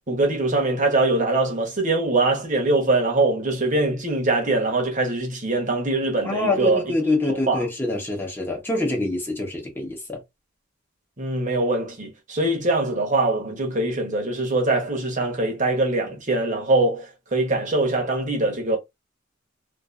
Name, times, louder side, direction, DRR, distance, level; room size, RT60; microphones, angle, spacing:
voice 1, 0.1-6.9 7.3-7.6 11.2-18.8, right 2 dB, 40° right, 1.0 m, -23 dB
voice 2, 6.2-10.2, left 2 dB, 10° left, 1.0 m, -25 dB
2.6 x 2.6 x 2.4 m
head